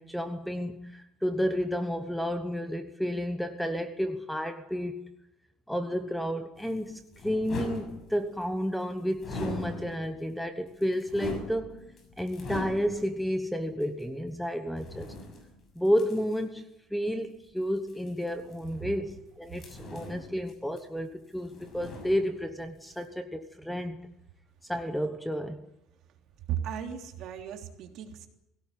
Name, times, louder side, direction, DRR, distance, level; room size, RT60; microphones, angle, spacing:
voice 1, 0.0-5.1 5.7-11.8 12.2-15.1 15.7-24.0 24.7-25.6, equal, ahead, 8 dB, 1.1 m, -31 dB
sound 1, 6.6-8.5 9.1-10.2 10.7-13.2 13.8-13.9 14.7-16.4 17.8-19.2 19.5-21.1 21.4-22.6 22.8-23.0, left 2 dB, 35° left, 6.6 m, -41 dB
voice 2, 26.5-28.3, right 9 dB, 55° right, 3 dB, 3.3 m, -35 dB
21.5 x 17.5 x 9.7 m, 0.86 s
cardioid pair, 165°, 0 cm